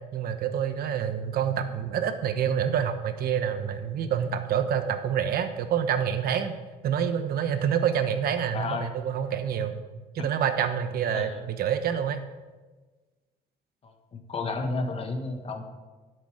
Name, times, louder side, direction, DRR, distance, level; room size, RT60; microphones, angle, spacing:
voice 1, 0.1-6.5 6.8-9.8 10.1-12.2, right 8 dB, 65° right, 9 dB, 1.0 m, -27 dB
voice 2, 8.5-8.9 11.1-11.4 13.8-15.6, left 3 dB, 35° left, 4 dB, 1.4 m, -32 dB
12.0 x 6.7 x 5.0 m, 1.3 s
cardioid pair, 110°, 17 cm